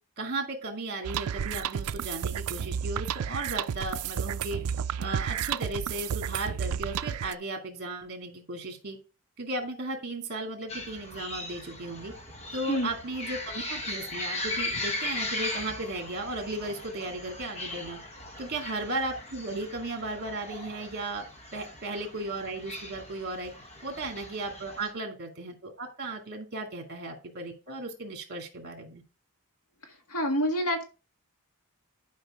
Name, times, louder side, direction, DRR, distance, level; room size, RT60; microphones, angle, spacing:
voice 1, 0.2-4.6 5.0-9.0 9.4-12.1 12.5-18.0 18.4-21.2 21.5-23.5 23.8-29.0, right 2 dB, 50° right, 2.3 m, -35 dB
sound 1, 1.0-7.3, right 8 dB, 85° right, 0.4 m, -32 dB
sound 2, 10.7-24.9, left 1 dB, 30° left, 1.3 m, -38 dB
voice 2, 30.1-30.9, equal, 85° left, 1.9 m, -27 dB
11.0 x 5.2 x 3.7 m
head